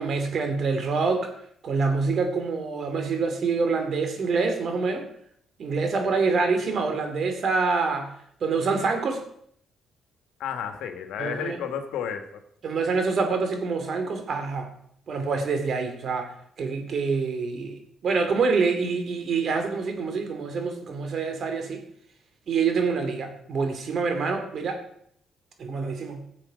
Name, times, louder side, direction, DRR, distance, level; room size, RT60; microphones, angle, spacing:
voice 1, 0.0-1.3 1.6-5.1 5.6-8.1 8.4-9.2 11.2-11.6 12.6-14.7 15.1-16.3 16.6-21.8 22.5-24.8 25.6-26.3, right 4 dB, 55° right, 6 dB, 2.6 m, -26 dB
voice 2, 10.4-12.4, left 8 dB, 85° left, 6 dB, 1.7 m, -32 dB
15.5 x 7.4 x 5.1 m, 0.68 s
cardioid pair, 90°, 0 cm